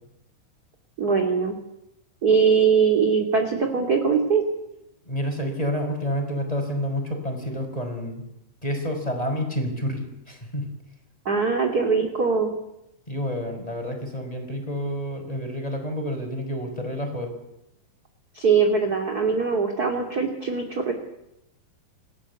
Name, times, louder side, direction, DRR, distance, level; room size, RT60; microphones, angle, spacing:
voice 1, 1.0-1.6 2.2-4.4 11.2-12.5 18.3-20.9, right 5 dB, 30° right, 3 dB, 2.6 m, -21 dB
voice 2, 5.0-8.2 8.6-10.7 13.1-17.3, equal, 10° left, 4 dB, 5.2 m, -29 dB
29.0 x 18.0 x 8.3 m, 0.86 s
omnidirectional pair, 4.1 m